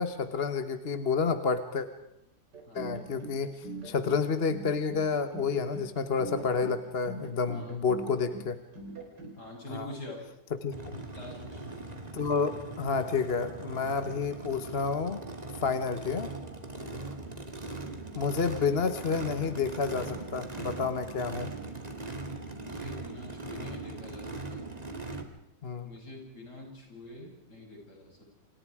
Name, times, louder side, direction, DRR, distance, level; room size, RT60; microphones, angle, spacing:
voice 1, 0.0-1.9 2.7-8.6 9.7-9.9 10.6-11.0 12.1-15.2 15.5-16.3 18.1-21.5 25.6-25.9, left 5 dB, 40° left, 10 dB, 1.4 m, -30 dB
sound 1, 2.5-9.4, right 3 dB, 75° right, 4.5 m, -42 dB
voice 2, 9.4-10.2 11.1-11.8 16.8-17.1 22.6-24.6 25.8-28.3, left 1 dB, 70° left, -1 dB, 8.2 m, -46 dB
Race car auto racing / Idling / Accelerating revving vroom, 10.7-25.2, right 2 dB, 20° right, 2.3 m, -40 dB
29.0 x 27.0 x 4.9 m, 0.77 s
omnidirectional pair, 1.9 m